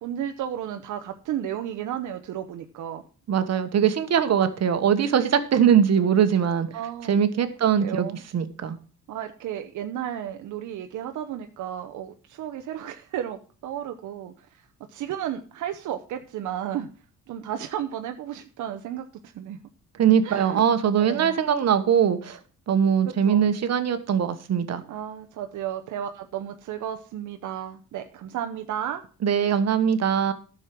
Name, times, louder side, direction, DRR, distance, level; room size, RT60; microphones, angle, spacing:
voice 1, 0.0-3.0 6.7-7.2 7.8-8.2 9.1-14.5 14.9-16.9 17.3-19.1 19.3-19.6 20.2-21.3 23.0-23.5 24.9-29.0, right 10 dB, 80° right, 6 dB, 0.9 m, -33 dB
voice 2, 3.3-6.7 7.1-8.1 8.3-8.8 20.0-22.4 22.7-24.8 29.2-30.3, right 8 dB, 60° right, 10 dB, 1.4 m, -21 dB
11.0 x 6.5 x 6.0 m, 0.38 s
cardioid pair, 90°, 30 cm